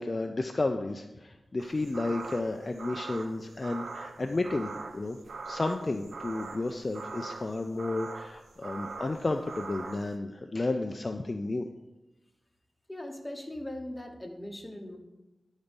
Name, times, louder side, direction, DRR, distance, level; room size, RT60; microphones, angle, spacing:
voice 1, 0.0-5.2 5.5-11.7, left 2 dB, 35° left, 5 dB, 0.4 m, -32 dB
sound 1, 1.6-10.1, right 4 dB, 85° right, 0.4 m, -42 dB
voice 2, 12.9-15.0, left 1 dB, 5° left, 2 dB, 1.0 m, -40 dB
10.0 x 4.0 x 5.2 m, 1.0 s
wide cardioid pair, 125°, 0 cm